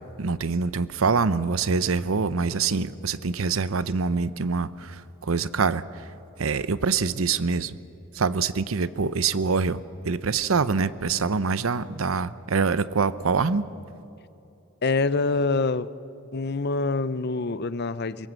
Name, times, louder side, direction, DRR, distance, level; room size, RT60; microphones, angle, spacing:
voice 1, 0.2-6.1 6.4-7.8 8.1-13.7, right 4 dB, 85° right, 16 dB, 0.7 m, -25 dB
voice 2, 14.8-15.9 16.3-18.3, left 3 dB, 50° left, 15 dB, 0.7 m, -25 dB
23.5 x 22.0 x 7.6 m, 2.7 s
head